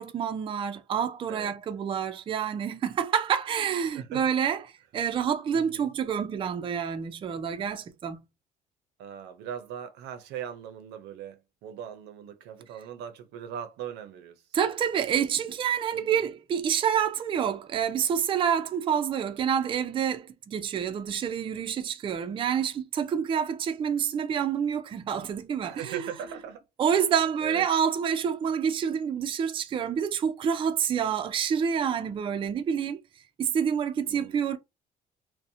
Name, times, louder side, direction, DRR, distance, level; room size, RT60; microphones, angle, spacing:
voice 1, 0.0-4.6 4.9-8.2 14.5-26.0 26.8-33.0 33.4-34.6, right 8 dB, 30° right, 0.4 m, -28 dB
voice 2, 3.9-4.3 5.5-5.9 9.0-14.6 15.9-16.2 25.6-26.7 27.4-27.7 34.1-34.5, right 9 dB, 80° right, 0.5 m, -40 dB
2.6 x 2.0 x 2.6 m
cardioid pair, 110°, 17 cm